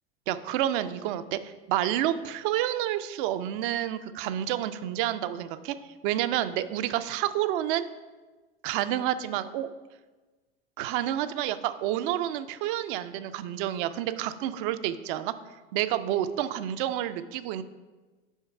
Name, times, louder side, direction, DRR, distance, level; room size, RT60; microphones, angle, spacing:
voice 1, 0.3-5.8 6.0-7.9 8.6-9.7 10.8-15.3 15.7-17.6, right 12 dB, 60° right, 11 dB, 0.5 m, -29 dB
5.0 x 4.5 x 5.6 m, 1.3 s
hypercardioid pair, 85°, 30 cm